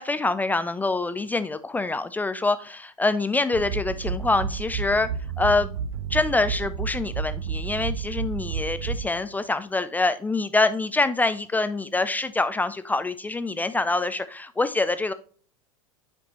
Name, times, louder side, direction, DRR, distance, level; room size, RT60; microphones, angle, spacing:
voice 1, 0.0-5.1 5.4-5.7 6.1-15.1, left 3 dB, 10° left, 13 dB, 0.3 m, -25 dB
sound 1, 3.5-9.3, right 6 dB, 75° right, 0.6 m, -31 dB
7.1 x 5.1 x 2.9 m, 0.42 s
hypercardioid pair, 105°, 17 cm